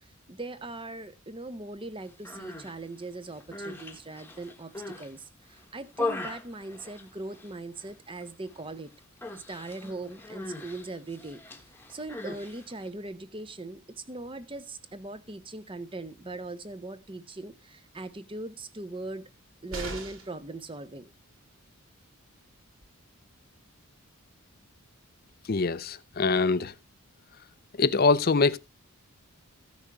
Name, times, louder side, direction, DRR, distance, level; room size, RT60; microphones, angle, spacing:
voice 1, 0.3-8.9 9.3-11.4 11.9-19.2 19.6-21.1, right 2 dB, 25° right, 0.8 m, -40 dB
Human voice, 2.1-2.7 3.3-5.1 5.5-7.5 7.8-8.3 8.5-8.7 9.2-12.9, left 2 dB, 10° left, 1.1 m, -39 dB
sound 1, 19.7-20.4 22.4-22.5 22.8-22.9, right 2 dB, 65° right, 2.4 m, -38 dB
voice 2, 25.5-26.7 27.8-28.6, left 4 dB, 45° left, 0.5 m, -24 dB
14.5 x 6.3 x 4.7 m
head